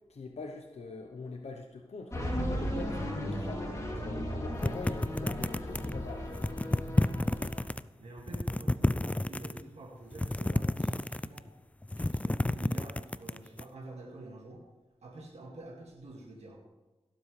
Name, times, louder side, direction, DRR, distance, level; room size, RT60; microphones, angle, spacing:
voice 1, 0.1-2.2 2.4-6.3, left 3 dB, 80° left, 3 dB, 0.9 m, -43 dB
sound 1, 2.1-7.6, equal, 30° left, 2.8 m, -36 dB
sound 2, 4.6-6.0 6.3-7.8 8.2-9.6 10.1-11.5 11.8-13.6, left 1 dB, 10° left, 0.3 m, -30 dB
voice 2, 8.0-11.4 12.0-14.6 15.0-16.6, right 2 dB, 85° right, -3 dB, 2.0 m, -48 dB
17.5 x 7.7 x 3.3 m, 1.2 s
cardioid pair, 55°, 11 cm